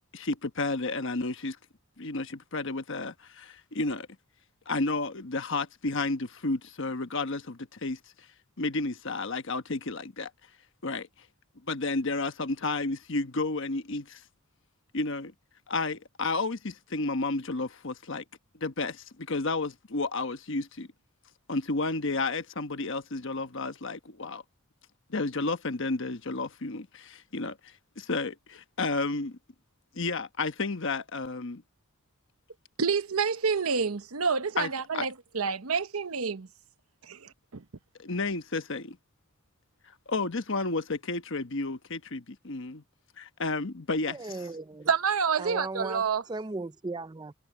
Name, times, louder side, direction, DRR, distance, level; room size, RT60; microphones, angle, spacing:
voice 1, 0.1-1.6 2.0-4.1 4.7-8.0 8.6-10.3 10.8-11.1 11.7-14.2 14.9-15.3 15.7-18.2 18.6-20.9 21.5-24.4 25.1-27.0 27.3-29.4 29.9-31.6 34.6-34.7 34.9-35.1 38.0-39.0 40.1-42.8 43.2-44.2, left 3 dB, 60° left, 1.2 m, -31 dB
voice 2, 32.8-36.5 37.0-37.6 44.9-46.2, right 5 dB, 85° right, 1.0 m, -28 dB
voice 3, 44.1-44.9 45.4-47.3, right 3 dB, 20° right, 0.5 m, -37 dB
head